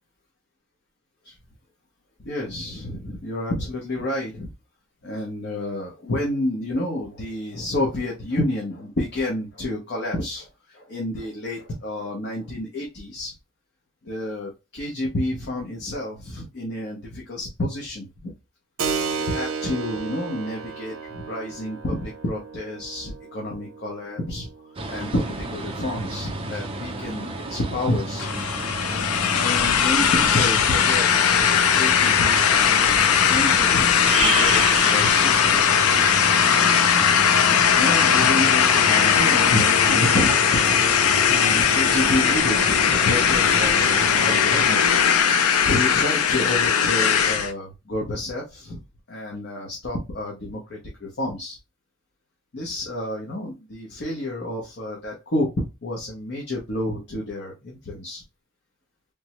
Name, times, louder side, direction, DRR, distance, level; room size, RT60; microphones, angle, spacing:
voice 1, 2.2-4.5 5.0-13.3 14.0-18.3 19.2-24.5 24.9-28.3 29.3-35.6 37.7-40.8 41.2-45.0 45.7-48.8 49.1-51.6 52.5-55.5 55.8-58.2, left 1 dB, 55° left, -2 dB, 0.7 m, -29 dB
Keyboard (musical), 18.8-27.0, right 5 dB, 80° right, 0.6 m, -34 dB
sound 1, 24.8-44.6, right 2 dB, 25° right, 0.5 m, -32 dB
sound 2, 28.2-47.5, left 7 dB, 90° left, 0.4 m, -19 dB
3.4 x 2.0 x 2.9 m, 0.25 s
head